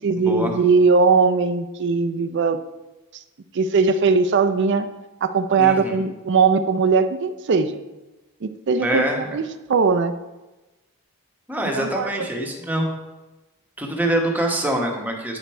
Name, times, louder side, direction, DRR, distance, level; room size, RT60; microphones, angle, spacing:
voice 1, 0.0-2.6 3.1-3.2 3.5-4.9 5.2-7.8 8.4-9.4 9.7-10.1 11.7-12.3, right 4 dB, 55° right, 10 dB, 0.4 m, -19 dB
voice 2, 5.6-6.0 8.8-9.2 11.5-12.9 13.8-15.4, right 1 dB, 10° right, 1 dB, 1.1 m, -24 dB
9.4 x 5.1 x 4.4 m, 1.1 s
head